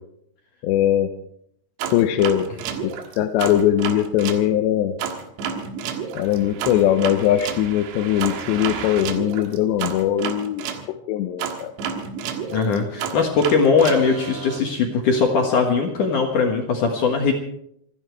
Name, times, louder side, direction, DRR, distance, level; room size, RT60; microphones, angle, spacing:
voice 1, 0.6-1.1 1.9-2.5 2.8-2.9 3.2-5.0 6.1-10.7 11.1-11.7, left 11 dB, 85° left, 6 dB, 3.1 m, -20 dB
sound 1, 1.8-4.4 5.0-10.8 11.4-14.6, right 7 dB, 80° right, 3.7 m, -30 dB
voice 2, 12.5-17.3, left 5 dB, 60° left, 2 dB, 2.5 m, -20 dB
27.0 x 10.5 x 4.6 m, 0.72 s
omnidirectional pair, 5.0 m